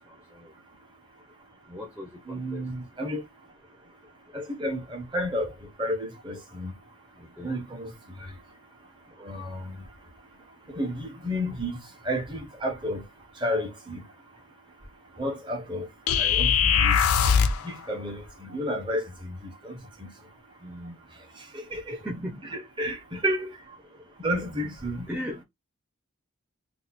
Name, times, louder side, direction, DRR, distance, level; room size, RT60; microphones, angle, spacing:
voice 1, 1.7-2.6 7.2-7.5 20.6-21.0 21.9-22.6 25.1-25.4, equal, 5° right, 0.4 m, -38 dB
voice 2, 2.3-3.2 4.3-5.5 5.8-6.7 7.4-7.9 8.2-8.3 9.2-9.8 10.7-13.0 13.4-14.0 15.2-15.9 16.2-17.0 17.6-20.1 21.7-22.0 22.5-23.5 24.2-25.1, equal, 20° right, 0.8 m, -31 dB
sound 1, 16.1-17.7, left 7 dB, 85° left, 0.5 m, -21 dB
2.7 x 2.2 x 4.0 m
head